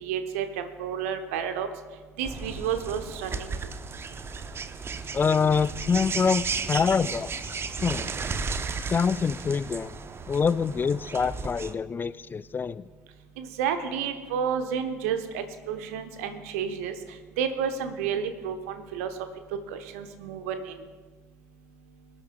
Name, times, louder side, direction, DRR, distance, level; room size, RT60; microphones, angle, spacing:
voice 1, 0.0-1.7 2.2-3.5 13.4-16.9 17.4-19.1 19.7-20.8, right 7 dB, 65° right, 8 dB, 1.0 m, -31 dB
sound 1, 2.2-11.7, right 5 dB, 30° right, 0.7 m, -34 dB
voice 2, 5.1-7.5 7.8-8.1 8.8-9.9 10.3-12.8, left 6 dB, 25° left, 17 dB, 0.3 m, -25 dB
24.0 x 9.6 x 2.3 m, 1.4 s
figure-of-eight pair, 55°, 8 cm